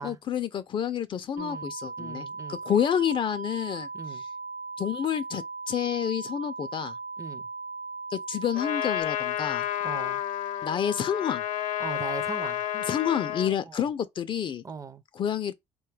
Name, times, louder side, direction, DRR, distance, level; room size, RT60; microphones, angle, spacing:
voice 1, 0.0-4.3 4.8-7.0 8.1-9.7 10.6-11.4 12.7-14.6 15.1-15.5, left 9 dB, 40° left, 0.4 m, -29 dB
voice 2, 1.4-1.7 2.0-2.6 3.9-4.2 7.2-7.5 9.8-10.2 11.8-12.6 13.6-13.9 14.6-15.0, right 5 dB, 25° right, 0.5 m, -39 dB
sound 1, 1.4-9.0, right 3 dB, 55° right, 1.0 m, -38 dB
Trumpet, 8.5-13.6, left 11 dB, 75° left, 0.7 m, -30 dB
4.1 x 2.2 x 3.2 m
cardioid pair, 115°, 13 cm